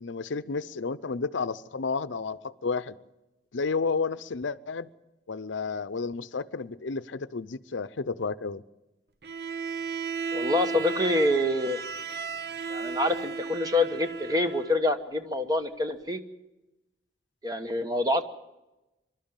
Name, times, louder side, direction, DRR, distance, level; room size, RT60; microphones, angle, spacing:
voice 1, 0.0-2.9 3.5-4.9 5.3-8.6, left 4 dB, 85° left, 15 dB, 0.6 m, -31 dB
Bowed string instrument, 9.2-14.8, right 5 dB, 55° right, 0.7 m, -34 dB
voice 2, 10.3-11.8 12.7-16.2 17.4-18.2, left 1 dB, 20° right, 7 dB, 1.1 m, -26 dB
25.0 x 12.5 x 9.0 m, 1.0 s
head